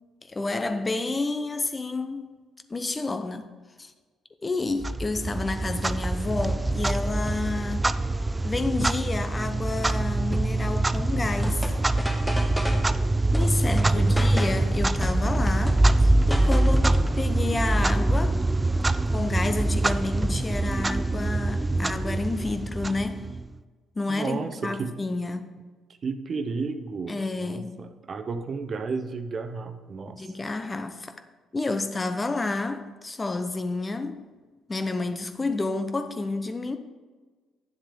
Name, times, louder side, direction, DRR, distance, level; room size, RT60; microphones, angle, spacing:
voice 1, 0.2-2.3 2.7-3.5 3.8-3.9 4.4-7.9 8.4-11.7 13.3-18.4 19.1-23.3 24.0-25.5 27.1-27.8 30.1-31.2 31.5-34.2 34.7-36.8, left 3 dB, 30° left, 0.7 m, -30 dB
Clock, 4.8-23.5, right 2 dB, 20° right, 0.4 m, -24 dB
sound 1, 11.1-12.9 13.3-14.7 15.0-17.2, left 1 dB, 5° left, 1.2 m, -33 dB
voice 2, 24.1-25.0 26.0-30.2, right 4 dB, 50° right, 0.7 m, -32 dB
9.0 x 7.3 x 3.8 m
hypercardioid pair, 55°, 0 cm